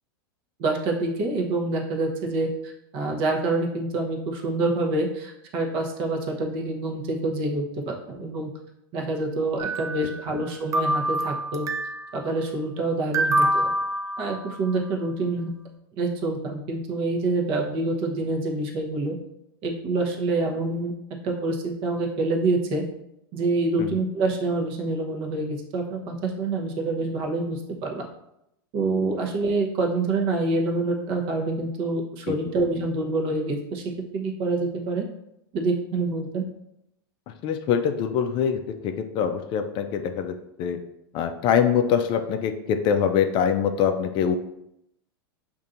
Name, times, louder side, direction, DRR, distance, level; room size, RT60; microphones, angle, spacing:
voice 1, 0.6-8.5 8.9-11.7 12.1-13.7 14.2-15.5 16.0-19.2 19.6-20.9 21.2-22.8 23.3-28.1 28.7-33.8 34.1-35.0 35.5-36.4, right 2 dB, 45° right, 1 dB, 0.9 m, -26 dB
sound 1, 9.6-10.5 10.7-12.1 13.1-14.7, right 1 dB, 25° right, 0.4 m, -26 dB
voice 2, 37.3-40.8 41.1-44.4, left 8 dB, 40° left, 7 dB, 0.4 m, -24 dB
5.3 x 2.6 x 2.5 m, 0.82 s
hypercardioid pair, 110°, 12 cm